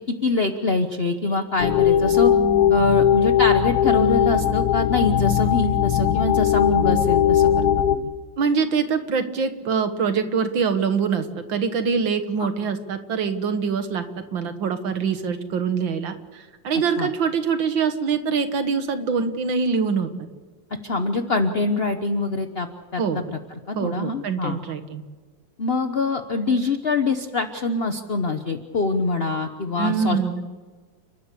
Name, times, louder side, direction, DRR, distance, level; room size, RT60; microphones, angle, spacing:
voice 1, 0.1-2.3 2.7-8.1 12.4-12.5 17.0-17.1 20.8-23.2 23.7-24.6 25.6-30.4, left 3 dB, 40° left, 7 dB, 1.0 m, -24 dB
sound 1, 1.6-8.0, left 9 dB, 65° left, 1.2 m, -19 dB
voice 2, 8.4-14.0 14.3-20.3 23.0-23.2 23.8-25.0 29.8-30.4, right 5 dB, 90° right, 8 dB, 2.2 m, -24 dB
30.0 x 13.0 x 8.4 m, 1.4 s
omnidirectional pair, 2.0 m